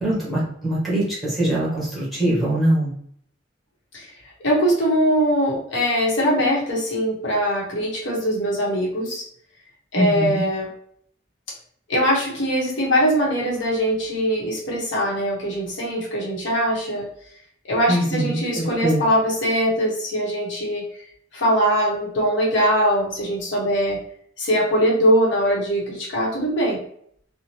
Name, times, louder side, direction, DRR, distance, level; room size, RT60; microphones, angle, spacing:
voice 1, 0.0-2.9 10.0-10.4 17.9-19.0, right 1 dB, ahead, -8 dB, 1.1 m, -22 dB
voice 2, 4.4-9.2 9.9-10.7 11.9-17.1 17.6-20.8 21.3-24.0 24.4-26.8, equal, 70° left, -3 dB, 0.9 m, -21 dB
2.7 x 2.1 x 2.9 m, 0.66 s
head